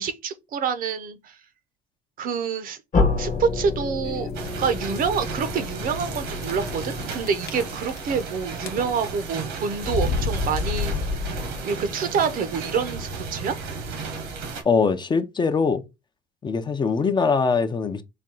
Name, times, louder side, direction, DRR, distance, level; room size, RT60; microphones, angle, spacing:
voice 1, 0.0-1.4 2.2-2.8 3.2-4.3 4.6-10.9 11.6-13.6, right 6 dB, 55° right, 0.6 m, -27 dB
sound 1, 2.9-7.7, left 3 dB, 45° left, 1.1 m, -28 dB
sound 2, 4.0-4.5 5.1-5.2 5.4-5.5 6.4-6.8 7.1-8.3 8.6-9.1 9.8-11.7, left 4 dB, 65° left, 0.9 m, -28 dB
sound 3, 4.3-14.6, right 4 dB, 80° right, 1.1 m, -34 dB
voice 2, 14.6-15.8 16.4-18.0, left 5 dB, 25° left, 0.5 m, -22 dB
4.2 x 2.2 x 3.7 m
cardioid pair, 110°, 17 cm